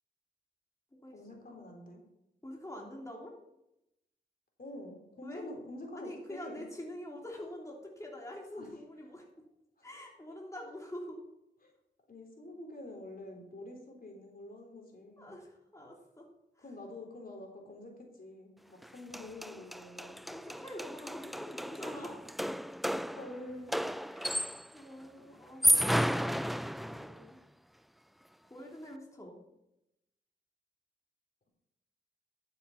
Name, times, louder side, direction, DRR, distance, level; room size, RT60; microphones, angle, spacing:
voice 1, 1.1-2.0 4.6-6.6 8.5-8.7 9.8-9.9 10.3-10.4 11.6-11.7 12.1-15.3 16.6-20.2 23.2-23.8, left 1 dB, 50° left, 1 dB, 3.5 m, -47 dB
voice 2, 2.4-3.3 5.2-5.4 5.9-9.4 9.8-11.2 15.2-16.2 16.6-16.7 20.3-22.2 24.1-24.4 24.7-26.2 26.8-27.4 28.4-29.4, left 1 dB, 15° left, -2 dB, 2.9 m, -46 dB
sound 1, 18.8-18.9 19.1-24.8 25.4-27.2, equal, ahead, 0.3 m, -32 dB
13.0 x 6.8 x 5.8 m, 0.86 s
cardioid pair, 55°, 19 cm